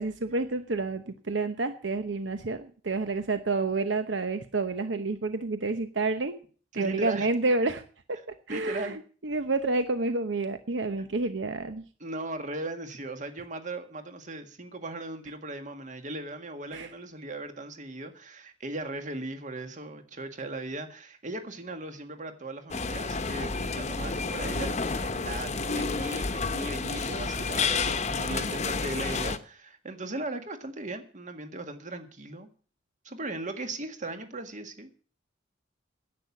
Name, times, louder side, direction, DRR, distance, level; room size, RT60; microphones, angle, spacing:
voice 1, 0.0-6.4 6.7-7.8 8.1-8.2 8.5-11.8 16.7-16.9, right 3 dB, 70° right, 9 dB, 0.9 m, -29 dB
voice 2, 6.7-7.3 8.5-9.0 12.0-32.5 33.0-34.9, right 2 dB, 40° right, 7 dB, 1.7 m, -38 dB
sound 1, 22.7-29.4, left 4 dB, 40° left, 0.9 m, -30 dB
10.5 x 8.7 x 8.4 m, 0.41 s
head